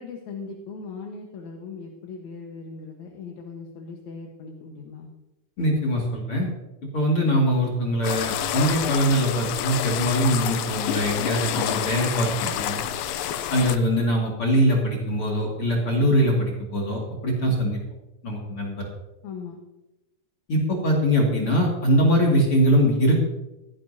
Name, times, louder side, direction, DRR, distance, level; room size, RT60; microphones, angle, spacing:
voice 1, 0.0-5.1 19.2-19.6, left 4 dB, 60° left, 1 dB, 2.4 m, -39 dB
voice 2, 5.6-6.5 6.9-12.8 13.5-17.8 18.2-18.9 20.5-23.2, equal, 40° left, -3 dB, 2.9 m, -22 dB
sound 1, 8.0-13.8, left 10 dB, 75° left, 2.3 m, -28 dB
16.5 x 15.0 x 2.8 m, 0.98 s
omnidirectional pair, 4.1 m